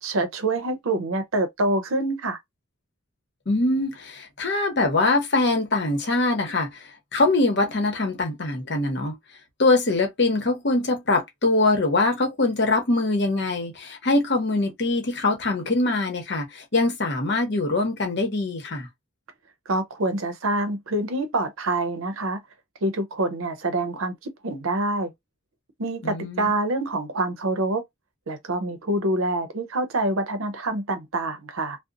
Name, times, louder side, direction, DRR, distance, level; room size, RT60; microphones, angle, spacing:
voice 1, 0.0-2.4 19.7-22.4 22.8-25.1 25.8-27.8 28.3-31.8, right 2 dB, 75° right, 0.7 m, -26 dB
voice 2, 3.5-6.7 7.1-9.1 9.6-18.9 26.0-26.5, left 2 dB, 55° left, 0.9 m, -23 dB
2.8 x 2.0 x 2.5 m
head